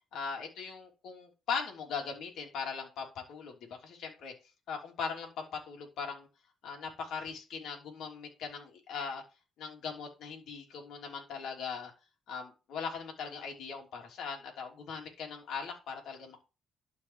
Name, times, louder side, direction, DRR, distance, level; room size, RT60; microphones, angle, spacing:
voice 1, 0.1-4.3 4.7-6.3 6.6-9.2 9.6-11.9 12.3-16.4, left 5 dB, 75° left, 2 dB, 3.0 m, -40 dB
12.0 x 4.8 x 4.6 m, 0.30 s
cardioid pair, 90°, 0 cm